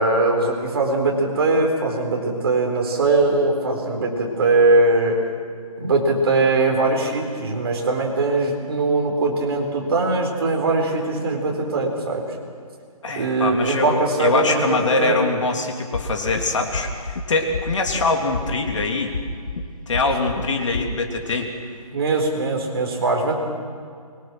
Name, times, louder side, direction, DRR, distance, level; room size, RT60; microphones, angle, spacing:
voice 1, 0.0-5.2 5.8-12.2 13.1-15.2 21.9-23.3, right 2 dB, 40° right, 1 dB, 4.4 m, -21 dB
voice 2, 13.0-19.1 19.9-21.5, left 3 dB, 55° left, 3 dB, 3.1 m, -23 dB
sound 1, 15.9-16.4 16.7-17.2 17.5-18.0 18.3-18.8 19.1-19.6 19.9-20.4 20.7-20.9, left 5 dB, 70° left, 2.8 m, -28 dB
24.5 x 22.5 x 6.3 m, 2.2 s
hypercardioid pair, 170°, 19 cm